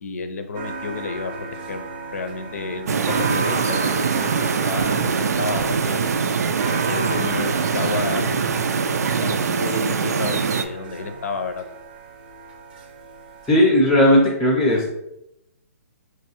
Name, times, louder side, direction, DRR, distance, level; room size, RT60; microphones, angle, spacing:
voice 1, 0.0-6.1 6.9-8.6 9.2-11.6, left 4 dB, 65° left, 8 dB, 0.6 m, -31 dB
sound 1, 0.5-13.7, right 3 dB, 35° right, 0.6 m, -34 dB
sound 2, 2.9-10.7, right 5 dB, 80° right, 0.4 m, -23 dB
voice 2, 13.5-14.9, left 1 dB, 5° left, -3 dB, 0.5 m, -16 dB
3.1 x 2.7 x 4.2 m, 0.82 s
hypercardioid pair, 165°, 9 cm